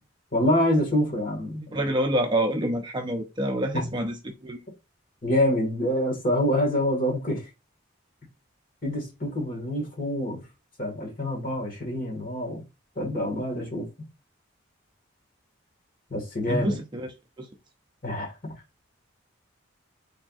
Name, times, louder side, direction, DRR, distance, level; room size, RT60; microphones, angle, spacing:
voice 1, 0.3-1.8 3.7-3.9 5.2-7.4 8.8-10.4 10.8-12.6 13.0-13.9 16.1-16.8 18.0-18.5, left 1 dB, 45° left, 1.5 m, -26 dB
voice 2, 1.7-4.6 16.5-17.5, right 1 dB, 20° right, 0.5 m, -27 dB
4.3 x 3.5 x 2.3 m
head